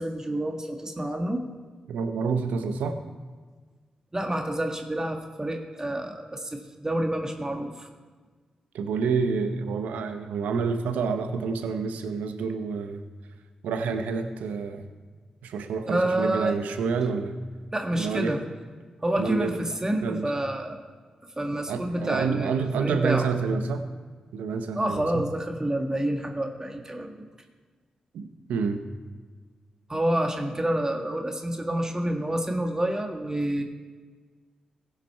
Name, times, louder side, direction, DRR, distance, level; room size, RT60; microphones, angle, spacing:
voice 1, 0.0-1.4 4.1-7.9 15.9-16.5 17.7-18.4 19.0-20.8 21.4-22.5 22.8-23.3 24.7-27.3 29.9-33.6, right 1 dB, 25° right, 3 dB, 1.5 m, -28 dB
voice 2, 1.9-3.0 8.7-13.0 13.6-14.9 15.4-17.4 17.9-18.4 19.2-19.6 20.0-20.3 21.7-23.8 24.3-25.3 28.1-28.8, right 5 dB, 85° right, 8 dB, 0.8 m, -28 dB
16.0 x 5.9 x 4.6 m, 1.4 s
supercardioid pair, 40°, 3 cm